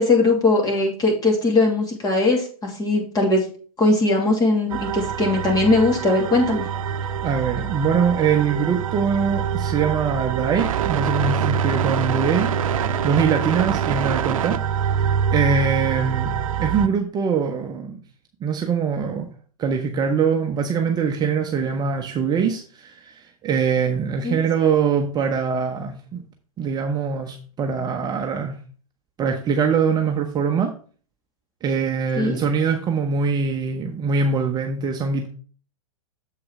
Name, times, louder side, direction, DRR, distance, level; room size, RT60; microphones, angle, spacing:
voice 1, 0.0-3.4 3.8-6.7 24.2-24.4 32.2-32.4, left 2 dB, 20° left, 1 dB, 2.6 m, -20 dB
sound 1, 4.7-16.9, right 8 dB, 70° right, 0.7 m, -25 dB
voice 2, 7.2-12.5 13.0-14.6 14.8-16.3 16.6-18.0 18.4-19.3 19.6-26.2 26.6-28.6 29.2-30.7 31.6-35.3, right 6 dB, 20° right, 3 dB, 0.9 m, -23 dB
7.5 x 4.8 x 4.8 m, 0.40 s
hypercardioid pair, 115°, 18 cm